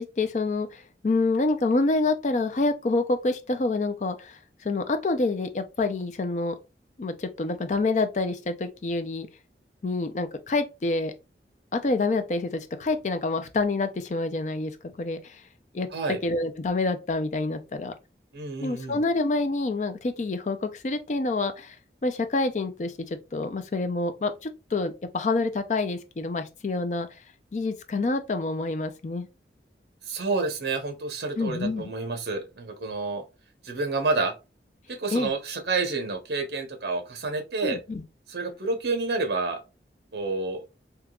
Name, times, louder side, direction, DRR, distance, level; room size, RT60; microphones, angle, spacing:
voice 1, 0.0-6.5 7.0-9.3 9.8-11.1 11.7-14.7 15.0-15.4 15.7-15.9 16.2-17.9 18.6-21.8 22.0-27.1 27.5-29.3 31.4-31.9 35.1-35.3 37.6-38.0, left 3 dB, 40° left, 0.4 m, -27 dB
voice 2, 18.3-19.0 30.1-33.2 33.6-34.3 34.9-37.8 38.3-39.6 40.1-40.6, right 3 dB, 65° right, 0.8 m, -29 dB
3.5 x 2.8 x 2.3 m
head